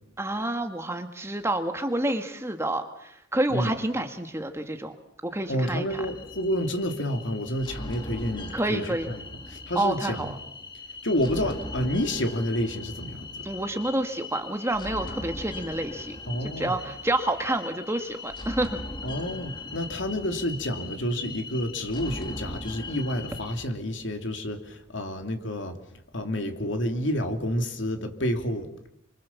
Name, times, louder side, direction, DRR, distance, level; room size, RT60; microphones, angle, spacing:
voice 1, 0.2-4.9 5.2-6.0 8.5-9.1 9.7-10.4 13.4-16.2 16.4-18.8, right 1 dB, 15° right, 6 dB, 1.7 m, -29 dB
voice 2, 5.5-10.3 11.0-13.5 16.3-16.8 19.0-25.8 26.1-28.7, equal, 65° left, 5 dB, 2.9 m, -29 dB
sound 1, 5.9-23.7, left 2 dB, 25° left, 2.2 m, -39 dB
28.5 x 25.0 x 7.2 m, 0.81 s
head